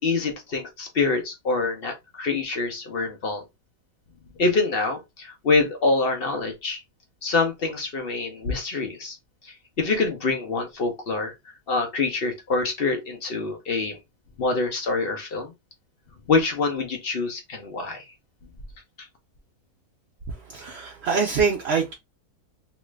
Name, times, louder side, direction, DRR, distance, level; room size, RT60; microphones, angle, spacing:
voice 1, 0.0-3.4 4.4-6.8 7.2-9.2 9.4-11.3 11.7-14.0 14.4-15.5 16.3-18.1, left 3 dB, 50° left, 0.7 m, -25 dB
voice 2, 20.3-21.9, right 5 dB, 65° right, 0.6 m, -25 dB
3.0 x 2.4 x 3.1 m
omnidirectional pair, 1.7 m